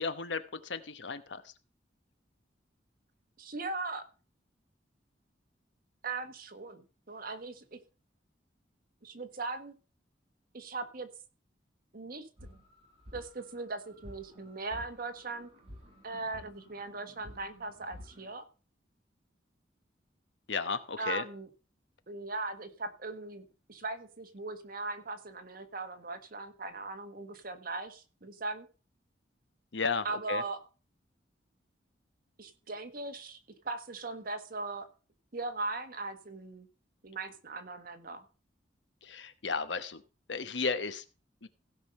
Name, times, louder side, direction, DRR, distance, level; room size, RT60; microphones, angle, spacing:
voice 1, 0.0-1.5 20.5-21.2 29.7-30.4 39.0-40.0 40.3-41.0 41.4-41.5, left 4 dB, 80° left, 12 dB, 1.0 m, -34 dB
voice 2, 3.4-4.1 6.0-7.8 9.0-9.7 10.5-11.1 11.9-12.3 13.1-15.5 16.0-18.5 21.0-21.5 22.1-28.7 30.0-30.6 32.4-33.4 33.6-34.9 35.3-36.7 37.0-38.2, right 3 dB, 55° right, 8 dB, 1.5 m, -39 dB
sound 1, 12.4-18.3, equal, 35° right, 5.8 m, -52 dB
16.5 x 5.5 x 5.4 m, 0.35 s
head